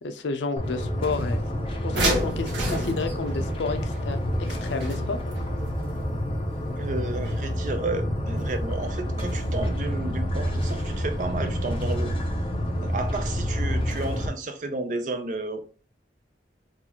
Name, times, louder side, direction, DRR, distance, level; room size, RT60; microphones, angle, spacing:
voice 1, 0.0-1.4 1.8-5.2, left 3 dB, 90° left, 0.5 m, -31 dB
sound 1, 0.6-14.3, equal, 30° left, 0.6 m, -28 dB
sound 2, 1.9-5.4 7.3-7.4 7.7-7.8, right 1 dB, 85° right, 1.2 m, -29 dB
voice 2, 6.8-12.1 12.8-15.6, right 2 dB, 45° right, 0.5 m, -32 dB
3.8 x 2.4 x 2.8 m
head